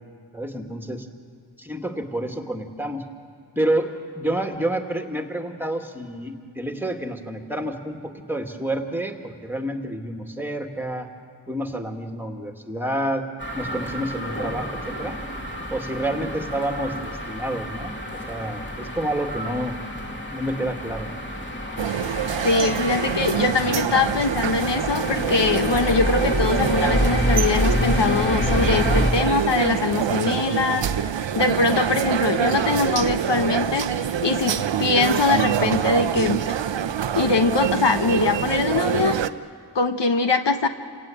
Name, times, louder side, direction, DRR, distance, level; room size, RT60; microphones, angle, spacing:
voice 1, 0.3-1.1 1.6-3.0 3.6-11.1 11.5-13.3 13.5-15.2 15.7-18.0 18.3-19.7 20.3-21.1, right 1 dB, 5° right, 3 dB, 2.3 m, -29 dB
sound 1, 13.4-29.1, equal, 25° left, 2.9 m, -27 dB
sound 2, 21.8-39.3, right 9 dB, 75° right, 0.8 m, -25 dB
voice 2, 22.4-36.4 37.1-39.1 39.7-40.7, left 4 dB, 65° left, 7 dB, 1.2 m, -22 dB
28.5 x 17.0 x 9.2 m, 2.1 s
cardioid pair, 65°, 45 cm